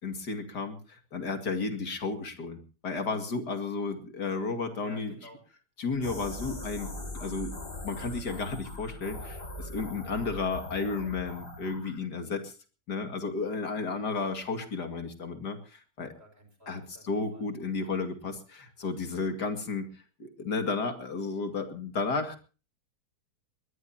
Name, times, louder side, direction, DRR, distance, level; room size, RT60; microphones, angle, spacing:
voice 1, 0.0-5.3 5.8-7.6 7.8-12.5 12.9-16.1 16.7-19.9 20.2-22.4, left 4 dB, 70° left, 6 dB, 2.9 m, -33 dB
voice 2, 4.8-5.4 16.2-17.0 17.3-17.5, equal, 35° right, 5 dB, 5.9 m, -51 dB
sound 1, 5.9-12.0, left 1 dB, 50° left, 5.6 m, -41 dB
21.0 x 20.5 x 2.8 m, 0.35 s
omnidirectional pair, 1.8 m